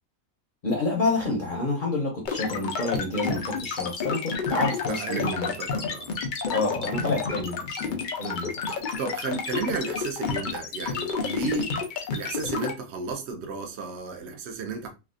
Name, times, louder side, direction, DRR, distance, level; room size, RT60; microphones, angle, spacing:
voice 1, 0.6-5.5 6.5-9.0, left 2 dB, 45° left, 0.7 m, -29 dB
sound 1, 2.3-12.7, left 5 dB, 75° left, 0.4 m, -30 dB
voice 2, 4.9-6.2 8.7-14.9, right 4 dB, 60° right, 0.8 m, -33 dB
3.4 x 2.3 x 2.4 m
omnidirectional pair, 1.5 m